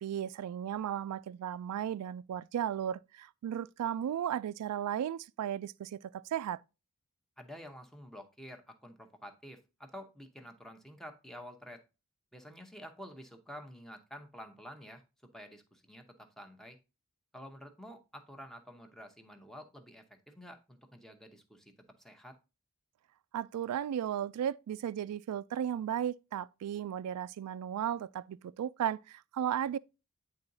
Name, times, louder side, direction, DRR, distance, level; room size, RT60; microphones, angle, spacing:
voice 1, 0.0-6.6 23.3-29.8, right 9 dB, 85° right, 0.3 m, -35 dB
voice 2, 7.4-11.8 12.3-15.0 15.3-16.8 17.3-22.4, equal, ahead, 0.7 m, -50 dB
9.7 x 3.8 x 2.6 m
head